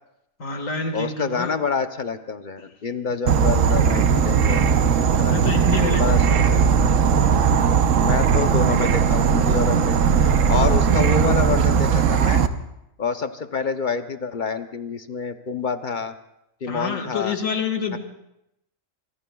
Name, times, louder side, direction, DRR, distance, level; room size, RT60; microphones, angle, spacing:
voice 1, 0.4-1.6 5.3-6.2 8.0-8.1 16.6-18.0, left 4 dB, 85° left, 5 dB, 2.1 m, -27 dB
voice 2, 0.9-4.7 5.2-5.4 6.0-6.6 8.0-12.4 13.0-16.1 16.6-17.4 17.9-18.0, left 5 dB, 45° left, 9 dB, 0.7 m, -27 dB
Insect / Frog, 3.3-12.5, right 7 dB, 80° right, 1.2 m, -18 dB
25.5 x 24.0 x 2.3 m, 0.85 s
omnidirectional pair, 1.3 m